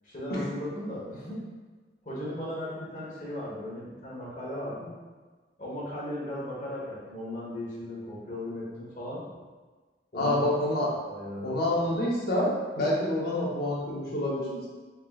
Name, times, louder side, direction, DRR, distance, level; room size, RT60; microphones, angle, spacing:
voice 1, 0.0-1.5 2.0-4.9 5.6-9.2 10.1-10.4 10.7-11.5, left 1 dB, 45° left, -7 dB, 1.2 m, -37 dB
voice 2, 10.1-10.9 11.4-14.7, left 1 dB, 60° left, -5 dB, 0.9 m, -27 dB
3.6 x 3.6 x 2.4 m, 1.4 s
head